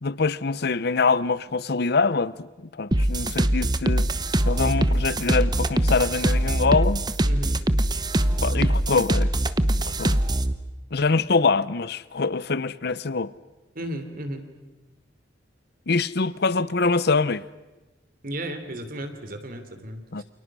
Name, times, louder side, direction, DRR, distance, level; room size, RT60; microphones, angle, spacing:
voice 1, 0.0-4.1 4.5-7.0 8.4-9.3 9.9-10.2 10.9-13.3 15.9-17.4 20.1-20.2, left 4 dB, 60° left, 0.8 m, -24 dB
sound 1, 2.9-10.5, right 1 dB, 25° right, 1.0 m, -22 dB
voice 2, 7.3-7.6 13.7-14.5 18.2-20.0, right 1 dB, 55° right, 3.3 m, -34 dB
29.0 x 28.5 x 6.3 m
head